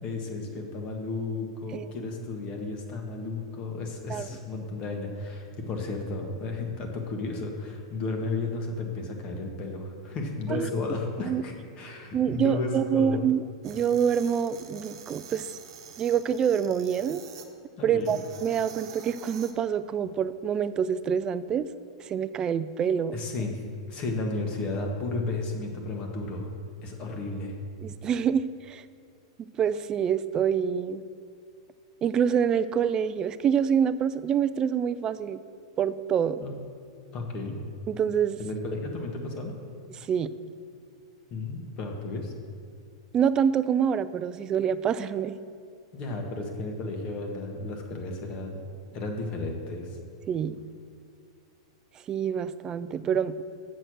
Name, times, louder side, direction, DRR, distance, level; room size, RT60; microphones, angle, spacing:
voice 1, 0.0-13.2 17.8-18.2 23.1-23.6 23.9-26.5 26.8-27.5 36.4-36.5 37.1-37.6 38.4-39.5 41.3-42.3 45.9-48.7 48.9-50.0, left 3 dB, 40° left, 2 dB, 1.5 m, -33 dB
voice 2, 12.1-15.6 16.0-17.2 17.8-21.7 22.0-23.2 27.8-28.8 29.4-31.0 32.0-35.4 35.8-36.4 37.9-38.4 40.0-40.3 43.1-45.4 50.3-50.6 52.1-53.4, right 8 dB, 25° right, 14 dB, 0.4 m, -26 dB
sound 1, 13.6-17.5 18.0-19.5, right 8 dB, 70° right, 1.0 m, -47 dB
7.7 x 6.6 x 6.3 m, 2.2 s
hypercardioid pair, 115°, 3 cm